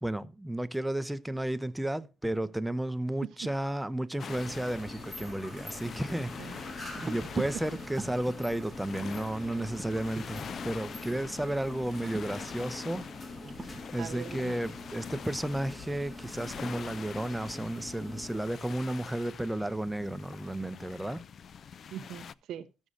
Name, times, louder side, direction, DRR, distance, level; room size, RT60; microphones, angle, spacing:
voice 1, 0.0-6.7 7.0-13.1 13.9-21.3, right 1 dB, 5° right, 0.6 m, -33 dB
sound 1, 4.2-22.3, left 7 dB, 55° left, 0.3 m, -46 dB
sound 2, 4.2-18.4, left 2 dB, 35° left, 1.9 m, -44 dB
sound 3, 5.8-13.8, right 2 dB, 20° right, 1.2 m, -47 dB
voice 2, 6.4-7.1 14.0-14.6 21.9-22.6, right 10 dB, 80° right, 0.5 m, -43 dB
14.0 x 6.3 x 2.5 m
cardioid pair, 90°, 0 cm